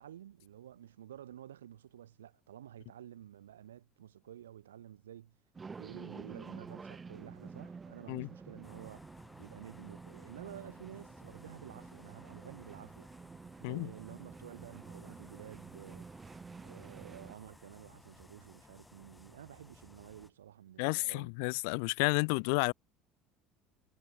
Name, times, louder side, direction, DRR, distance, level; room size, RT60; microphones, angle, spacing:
voice 1, 0.0-5.3 5.8-9.1 9.4-13.1 13.6-16.1 16.6-21.3, right 11 dB, 80° right, 6.8 m, -51 dB
sound 1, 5.5-17.4, right 5 dB, 25° right, 1.0 m, -50 dB
sound 2, 8.6-20.3, left 2 dB, 10° left, 6.9 m, -58 dB
voice 2, 20.8-22.7, left 35 dB, 65° left, 0.7 m, -31 dB
figure-of-eight pair, 65°, 0 cm